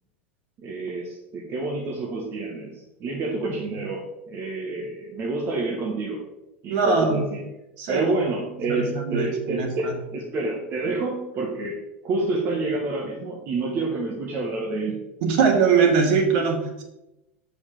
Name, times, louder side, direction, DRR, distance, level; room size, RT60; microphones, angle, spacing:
voice 1, 0.6-6.2 6.6-7.5 7.9-15.0, right 2 dB, 40° right, 0 dB, 1.6 m, -28 dB
voice 2, 6.7-7.3 7.8-8.1 8.7-9.9 15.2-16.8, right 5 dB, 55° right, 3 dB, 2.2 m, -21 dB
7.0 x 5.5 x 6.8 m, 0.94 s
figure-of-eight pair, 85°, 6 cm